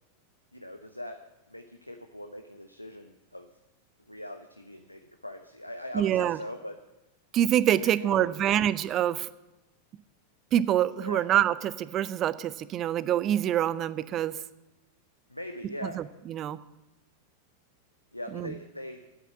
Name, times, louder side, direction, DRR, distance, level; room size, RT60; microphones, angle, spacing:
voice 1, 0.5-1.2 1.5-3.5 4.1-6.8 7.7-8.6 11.0-11.3 15.3-16.0 18.1-19.1, left 1 dB, 90° left, 6 dB, 0.7 m, -41 dB
voice 2, 5.9-6.4 7.3-9.3 10.5-14.3 15.8-16.6 18.3-18.5, right 11 dB, 30° right, 16 dB, 0.5 m, -26 dB
9.2 x 8.3 x 8.3 m, 0.99 s
figure-of-eight pair, 90°, 0 cm